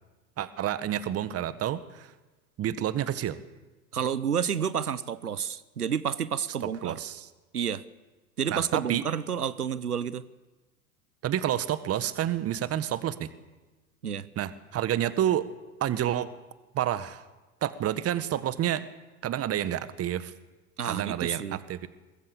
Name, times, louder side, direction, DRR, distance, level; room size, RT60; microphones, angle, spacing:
voice 1, 0.4-2.1 2.6-3.4 6.8-7.3 8.5-9.0 11.2-13.3 14.4-15.4 15.8-16.3 16.7-17.2 17.6-18.8 19.2-20.3 20.8-21.9, right 11 dB, 30° right, 13 dB, 1.7 m, -29 dB
voice 2, 3.9-7.0 7.5-7.8 8.4-10.2 14.0-14.3 20.8-21.6, right 8 dB, 90° right, 17 dB, 1.0 m, -30 dB
24.0 x 21.5 x 7.3 m, 1.2 s
figure-of-eight pair, 85°, 44 cm